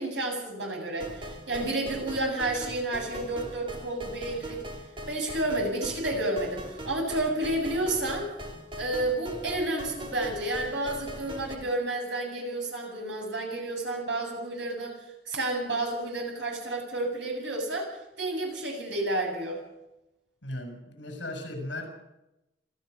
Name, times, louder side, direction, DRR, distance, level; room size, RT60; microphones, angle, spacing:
voice 1, 0.0-4.6 5.1-8.3 8.8-15.0 15.3-17.9 18.2-19.6, right 2 dB, 70° right, 1 dB, 8.0 m, -30 dB
sound 1, 1.0-11.6, equal, 25° right, 2.8 m, -41 dB
voice 2, 20.4-21.9, left 1 dB, 65° left, 4 dB, 6.7 m, -37 dB
27.0 x 14.5 x 6.7 m, 0.92 s
head